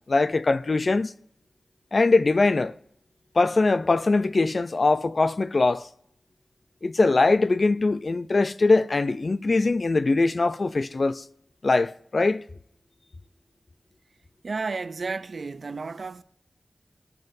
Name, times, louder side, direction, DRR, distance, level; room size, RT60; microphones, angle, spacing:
voice 1, 0.1-1.1 1.9-2.7 3.4-5.9 6.8-11.2 11.6-12.4, left 3 dB, 55° left, 0.4 m, -22 dB
voice 2, 14.4-16.2, right 4 dB, 65° right, 0.4 m, -32 dB
15.5 x 5.3 x 2.6 m
cardioid pair, 50°, 0 cm